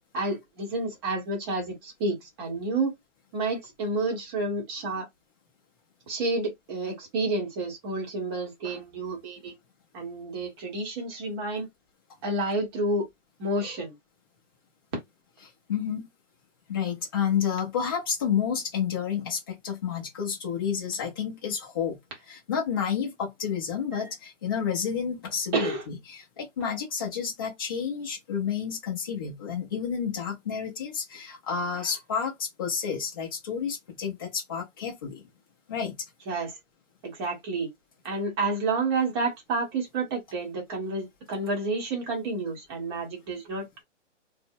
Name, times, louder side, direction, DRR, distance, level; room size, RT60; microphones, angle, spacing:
voice 1, 0.1-2.9 3.3-5.1 6.1-9.5 9.9-11.7 12.2-13.1 13.4-13.9 23.9-24.0 25.5-25.9 36.3-36.6 37.0-37.7 38.0-43.8, right 3 dB, 20° right, 0.8 m, -30 dB
voice 2, 15.7-16.0 16.7-22.0 22.3-35.2 35.7-35.9, left 7 dB, 20° left, 0.4 m, -30 dB
2.6 x 2.0 x 2.5 m
hypercardioid pair, 145°, 38 cm